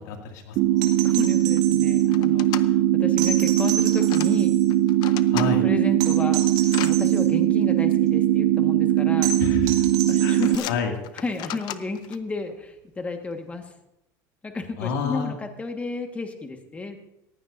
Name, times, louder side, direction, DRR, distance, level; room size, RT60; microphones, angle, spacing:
voice 1, 0.1-0.9 5.3-5.6 9.4-9.7 10.2-10.4 10.7-10.9 14.8-15.3, left 5 dB, 85° left, 2 dB, 2.3 m, -29 dB
sound 1, 0.6-10.6, right 12 dB, 50° right, 0.5 m, -20 dB
sound 2, 0.8-2.1 3.2-4.7 6.0-7.3 9.2-10.7 12.5-12.6, right 7 dB, 80° right, 2.2 m, -32 dB
sound 3, 1.0-1.1 1.3-1.6 2.1-2.7 3.6-4.3 4.7-5.5 6.0-6.9 7.9-8.0 9.0-9.3 9.6-10.0 10.4-12.2, left 13 dB, 50° left, 0.7 m, -36 dB
voice 2, 1.0-4.6 5.3-9.3 10.1-10.7 11.1-13.7 14.4-17.0, left 3 dB, 15° left, 5 dB, 1.5 m, -33 dB
18.5 x 15.5 x 2.7 m, 0.87 s
supercardioid pair, 135°, 9 cm